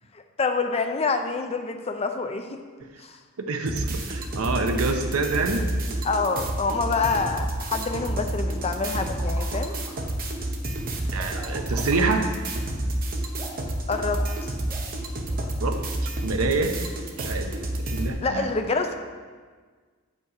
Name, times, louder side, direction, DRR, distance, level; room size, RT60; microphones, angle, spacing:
voice 1, 0.1-2.6 3.0-3.2 6.0-9.8 13.9-14.5 18.2-19.0, left 4 dB, 30° left, 6 dB, 0.5 m, -27 dB
voice 2, 3.5-5.6 11.1-12.3 15.6-15.8 16.0-16.8 17.2-17.6 17.9-18.5, right 3 dB, 70° right, 5 dB, 0.7 m, -26 dB
sound 1, 3.7-18.1, right 1 dB, 40° right, 0.8 m, -29 dB
sound 2, 7.3-7.4 7.9-8.0 8.9-9.9 11.2-12.2 13.4-13.7 14.1-14.4 14.7-15.0 15.3-15.4, right 1 dB, 15° right, 1.5 m, -43 dB
7.9 x 5.3 x 4.9 m, 1.5 s
head